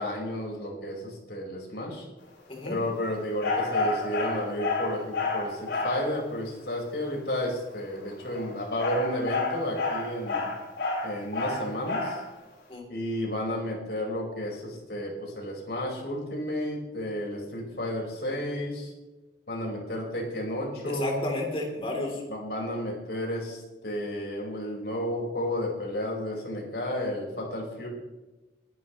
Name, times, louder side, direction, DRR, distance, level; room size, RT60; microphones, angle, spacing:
voice 1, 0.0-2.0 2.6-10.5 11.0-12.2 12.9-18.9 19.5-21.2 22.3-27.9, left 1 dB, 70° left, -1 dB, 5.3 m, -32 dB
sound 1, 3.4-6.1 8.2-12.2, left 3 dB, 90° left, 4.5 m, -29 dB
voice 2, 20.8-22.2, left 2 dB, 30° left, 0 dB, 3.5 m, -32 dB
22.5 x 12.0 x 3.2 m, 1.1 s
head